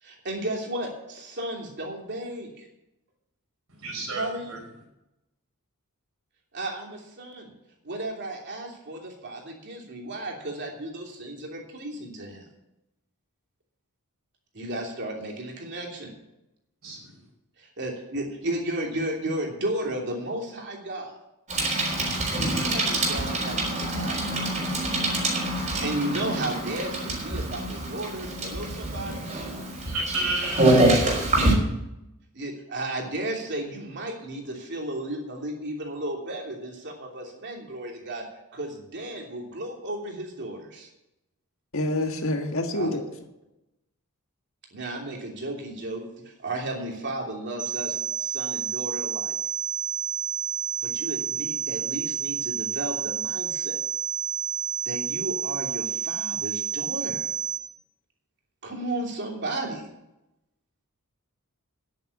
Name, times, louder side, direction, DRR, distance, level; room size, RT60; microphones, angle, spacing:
voice 1, 0.0-2.7 4.1-4.5 6.5-7.5 7.8-12.4 14.5-16.1 17.6-21.2 22.5-24.6 25.6-29.3 32.3-38.2 38.5-40.9 42.7-43.0 44.7-49.4 50.8-53.8 54.8-57.3 58.6-59.9, right 1 dB, 50° right, 0 dB, 3.0 m, -34 dB
voice 2, 3.7-4.6 16.8-17.2 29.8-30.6, right 2 dB, 75° right, 0 dB, 5.2 m, -31 dB
Bicycle, 21.5-31.6, right 1 dB, 35° right, 3.7 m, -25 dB
voice 3, 41.7-43.0, left 1 dB, 60° left, 4 dB, 1.6 m, -27 dB
sound 1, 47.6-57.6, right 7 dB, 5° right, 1.1 m, -30 dB
10.0 x 9.1 x 7.2 m, 0.88 s
head